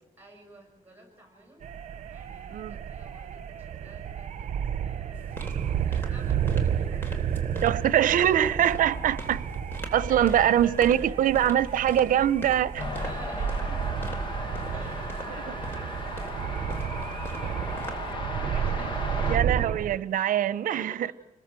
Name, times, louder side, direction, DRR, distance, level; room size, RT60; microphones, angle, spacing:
voice 1, 0.2-1.7 2.1-7.6 8.4-9.0 9.8-11.4 12.9-14.1 14.5-19.4 20.7-21.1, right 2 dB, 10° right, 6.9 m, -50 dB
sound 1, 1.6-20.0, right 8 dB, 55° right, 1.2 m, -32 dB
sound 2, 5.1-18.1, right 1 dB, 15° left, 3.5 m, -40 dB
voice 2, 7.6-9.5 9.9-12.9 19.3-20.9, right 10 dB, 70° right, 0.8 m, -23 dB
sound 3, 12.8-19.4, left 2 dB, 35° left, 2.0 m, -36 dB
28.0 x 21.0 x 7.6 m
wide cardioid pair, 170°, 14 cm